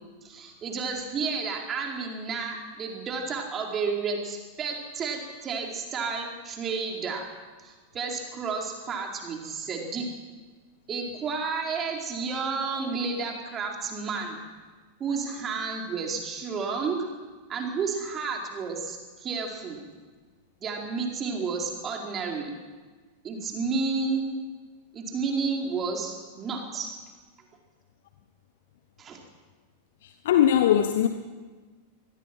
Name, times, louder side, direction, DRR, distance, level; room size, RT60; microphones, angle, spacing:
voice 1, 0.2-7.2 7.6-10.1 10.9-14.4 15.0-17.1 17.5-19.8 20.6-22.5 23.2-24.3 24.9-26.9 29.0-29.2, right 4 dB, 25° right, 1 dB, 4.6 m, -31 dB
voice 2, 30.0-31.1, left 10 dB, 55° left, 9 dB, 1.2 m, -21 dB
25.0 x 20.5 x 6.2 m, 1.4 s
figure-of-eight pair, 90°, 0 cm